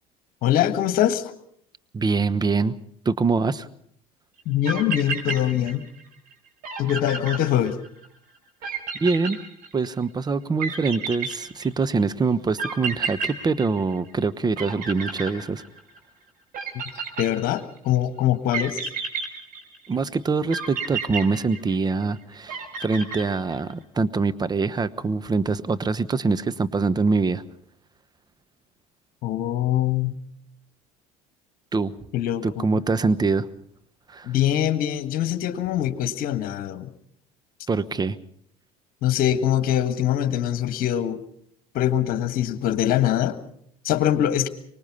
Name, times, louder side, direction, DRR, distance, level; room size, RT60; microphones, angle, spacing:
voice 1, 0.4-1.3 4.4-5.8 6.8-7.8 16.7-16.8 17.2-18.8 29.2-30.2 32.1-32.8 34.2-36.9 39.0-41.2 41.7-43.4 43.8-44.5, left 11 dB, 50° left, 12 dB, 1.6 m, -23 dB
voice 2, 1.9-2.8 3.0-3.7 8.6-8.7 9.0-9.4 9.7-15.6 19.9-27.4 31.7-31.9 32.4-33.5 34.1-34.3 37.7-38.2, right 4 dB, 20° right, 14 dB, 1.1 m, -24 dB
sound 1, 4.4-4.5 4.7-6.0 6.3-6.4 6.6-8.1 8.6-10.0 10.6-11.9 12.6-14.3 14.6-16.0 16.5-17.8 18.5-19.9 20.5-22.0 22.5-23.7, right 5 dB, 50° right, 5.2 m, -31 dB
24.5 x 20.0 x 5.5 m, 0.67 s
hypercardioid pair, 70°, 18 cm